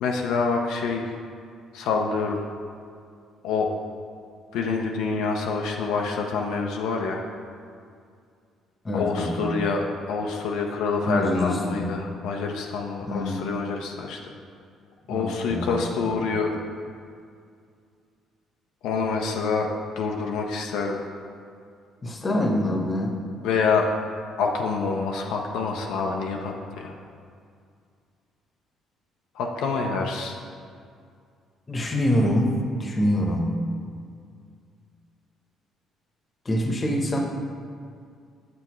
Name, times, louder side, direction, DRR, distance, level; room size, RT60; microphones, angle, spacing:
voice 1, 0.0-1.2 1.7-2.4 3.4-3.7 4.5-7.2 8.9-14.3 15.1-16.5 18.8-19.7 20.0-21.0 23.4-23.9 24.4-26.9 29.3-30.4, left 4 dB, 85° left, 1 dB, 0.5 m, -26 dB
voice 2, 8.8-9.5 11.0-11.9 13.0-13.5 15.1-15.8 22.0-23.2 31.7-33.6 36.4-37.2, left 1 dB, 30° left, 1 dB, 1.0 m, -25 dB
7.6 x 6.0 x 3.1 m, 2.3 s
cardioid pair, 85°, 0 cm